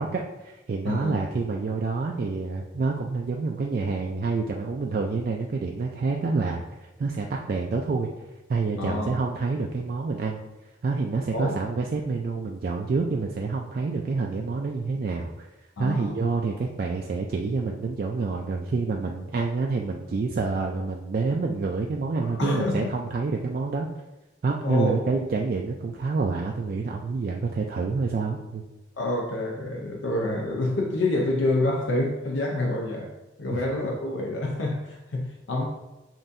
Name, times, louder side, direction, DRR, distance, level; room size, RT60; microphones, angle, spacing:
voice 1, 0.0-8.1 8.5-10.4 10.8-15.5 15.8-23.9 24.4-28.6 33.5-33.6, right 4 dB, 50° right, 0.3 m, -28 dB
voice 2, 0.9-1.2 8.8-9.2 11.3-11.6 15.8-16.2 22.2-22.9 24.6-25.1 29.0-33.1 33.4-35.7, left 2 dB, 85° left, 0.6 m, -27 dB
7.3 x 2.6 x 2.6 m
head